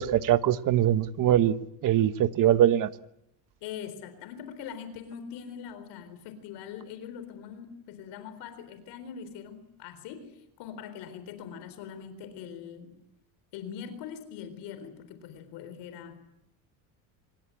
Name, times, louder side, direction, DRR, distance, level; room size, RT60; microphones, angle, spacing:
voice 1, 0.0-1.5 1.8-2.9, right 11 dB, 50° right, 1.2 m, -22 dB
voice 2, 3.6-12.9 13.5-16.2, left 8 dB, 75° left, 4.1 m, -42 dB
26.0 x 22.5 x 9.8 m
cardioid pair, 145°, 41 cm